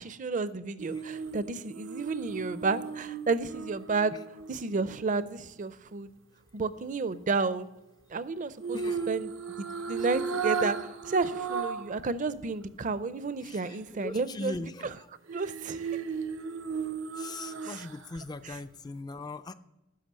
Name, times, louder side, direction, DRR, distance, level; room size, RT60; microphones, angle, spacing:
voice 1, 0.0-4.1 4.5-6.1 6.5-7.7 8.1-8.8 9.1-9.3 9.6-15.0 15.3-15.8 17.6-17.9 18.4-18.6, right 4 dB, 40° right, 14 dB, 0.5 m, -31 dB
sound 1, 0.8-5.0 8.6-12.0 12.4-12.5 15.3-18.2 18.5-18.6, right 5 dB, 85° right, 0.7 m, -35 dB
voice 2, 8.7-9.1 13.4-15.1 17.2-19.5, left 3 dB, 20° left, 12 dB, 0.3 m, -40 dB
11.5 x 5.9 x 7.4 m, 0.98 s
head